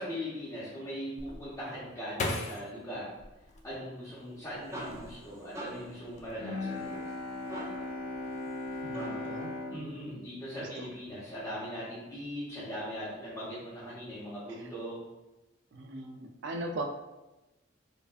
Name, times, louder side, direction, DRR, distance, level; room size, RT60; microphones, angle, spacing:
voice 1, 0.0-3.1 3.6-7.0 9.7-15.0, equal, 15° left, -12 dB, 0.9 m, -40 dB
sound 1, 1.2-4.3 4.8-5.5 5.9-6.3, left 2 dB, 40° left, 0.4 m, -38 dB
sound 2, 4.2-9.4, right 1 dB, 15° right, 0.6 m, -45 dB
Bowed string instrument, 6.4-11.5, left 2 dB, 70° left, 0.8 m, -39 dB
voice 2, 8.8-9.5 10.6-10.7 15.7-16.8, right 2 dB, 65° right, 4 dB, 0.4 m, -38 dB
4.5 x 2.5 x 2.4 m, 1.0 s
head